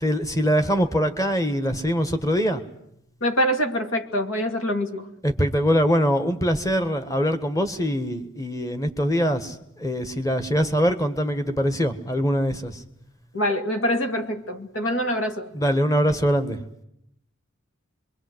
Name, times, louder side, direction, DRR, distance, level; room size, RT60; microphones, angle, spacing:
voice 1, 0.0-2.6 5.2-12.8 15.5-16.6, equal, 15° left, 1.7 m, -23 dB
voice 2, 3.2-5.1 13.3-15.5, equal, 70° left, 2.4 m, -25 dB
25.5 x 23.0 x 8.1 m
head